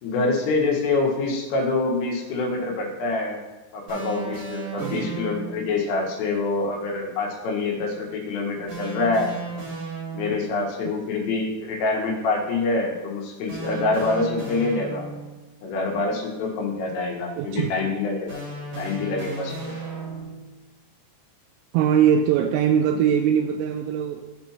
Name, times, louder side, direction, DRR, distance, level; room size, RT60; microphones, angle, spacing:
voice 1, 0.0-3.4 3.7-9.4 10.1-15.1 15.6-18.4 18.8-19.8, left 3 dB, 75° left, -1 dB, 4.0 m, -26 dB
sound 1, 3.9-5.7 8.7-10.6 13.5-15.4 18.3-20.5, right 3 dB, 50° right, 2.0 m, -35 dB
voice 2, 4.8-5.2 17.4-17.7 21.7-24.2, right 8 dB, 85° right, 6 dB, 2.8 m, -21 dB
15.5 x 5.3 x 2.9 m, 1.2 s
omnidirectional pair, 6.0 m